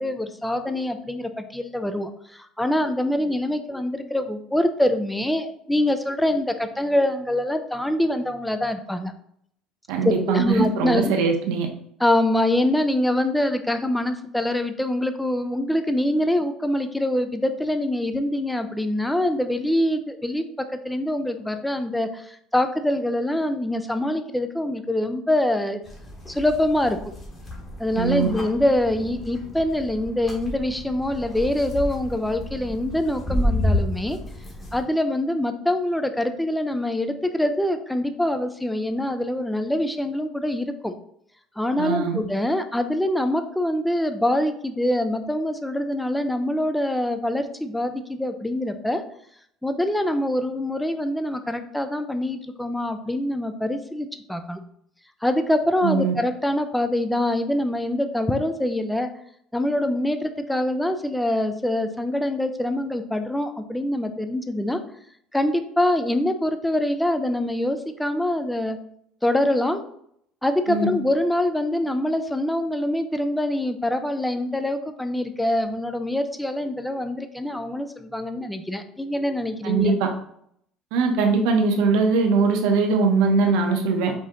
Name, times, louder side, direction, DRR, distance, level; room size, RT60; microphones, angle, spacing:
voice 1, 0.0-9.1 10.3-11.1 12.0-20.4 20.8-25.8 26.3-27.0 27.8-34.2 34.7-40.9 41.6-49.0 49.6-54.6 55.2-59.1 59.5-64.8 65.3-68.8 69.2-69.8 70.4-79.9, left 1 dB, 5° left, 8 dB, 0.3 m, -24 dB
voice 2, 9.9-11.7 27.9-28.3 41.8-42.2 55.8-56.1 70.7-70.9 79.6-80.1 80.9-84.1, right 4 dB, 80° right, 3 dB, 0.8 m, -21 dB
sound 1, 25.8-34.8, left 1 dB, 20° left, 1.1 m, -30 dB
5.0 x 2.7 x 3.6 m, 0.69 s
cardioid pair, 170°, 0 cm